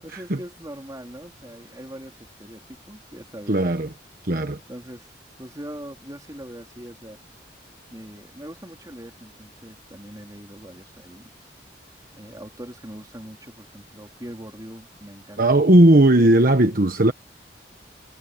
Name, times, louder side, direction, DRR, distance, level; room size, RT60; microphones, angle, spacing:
voice 1, 0.0-3.9 4.7-5.1 5.4-7.2 7.9-11.3 12.1-15.6, equal, 20° right, 3.7 m, -41 dB
voice 2, 3.5-3.9 4.2-4.6 15.4-17.1, right 1 dB, 55° right, 1.3 m, -16 dB
head